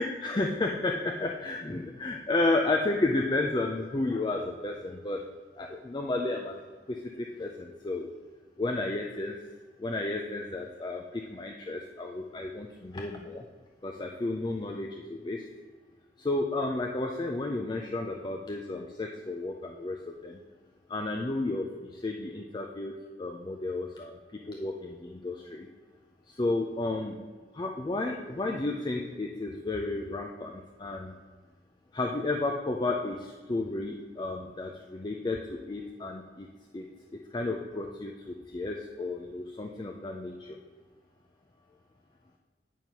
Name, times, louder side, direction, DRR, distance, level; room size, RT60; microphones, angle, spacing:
voice 1, 0.0-5.2 5.6-6.6 6.9-8.1 8.6-9.3 9.8-13.4 13.8-15.4 16.2-20.4 20.9-24.1 24.5-25.7 26.3-27.2 27.5-31.1 31.9-36.5 36.7-36.8 37.3-40.6, left 2 dB, 25° left, 1 dB, 0.4 m, -32 dB
8.9 x 4.6 x 5.4 m, 1.5 s
head